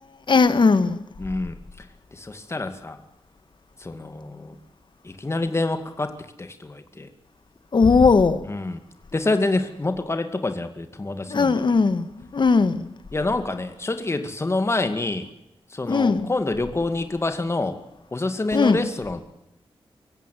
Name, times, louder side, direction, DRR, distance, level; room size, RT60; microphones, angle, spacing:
voice 1, 0.3-1.0 7.7-8.4 11.3-12.9 15.9-16.3 18.5-18.8, left 4 dB, 55° left, 1.8 m, -18 dB
voice 2, 1.2-1.5 2.1-3.0 3.8-4.5 5.0-6.1 6.4-7.1 8.4-8.8 9.1-11.5 13.1-15.3 15.7-17.8 18.1-19.2, left 2 dB, 25° left, 2.3 m, -27 dB
23.5 x 16.0 x 9.4 m
wide cardioid pair, 100°, 10 cm